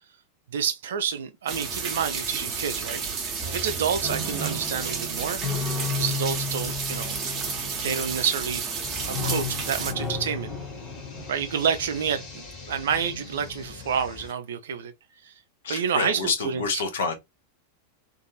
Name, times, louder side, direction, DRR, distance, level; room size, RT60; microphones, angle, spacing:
voice 1, 0.5-3.0 3.5-5.4 5.9-7.2 7.8-8.6 9.1-10.5 11.3-14.9 15.2-15.3 15.7-16.8, right 7 dB, 60° right, 0.4 m, -28 dB
sound 1, 1.5-9.9, right 5 dB, 30° right, 0.9 m, -31 dB
sound 2, 3.4-8.6 9.0-12.1, left 4 dB, 10° left, 1.0 m, -34 dB
sound 3, 8.8-14.3, left 5 dB, 40° left, 1.4 m, -41 dB
voice 2, 15.6-17.1, left 5 dB, 60° left, 0.7 m, -28 dB
2.5 x 2.5 x 2.7 m
figure-of-eight pair, 90°, 0 cm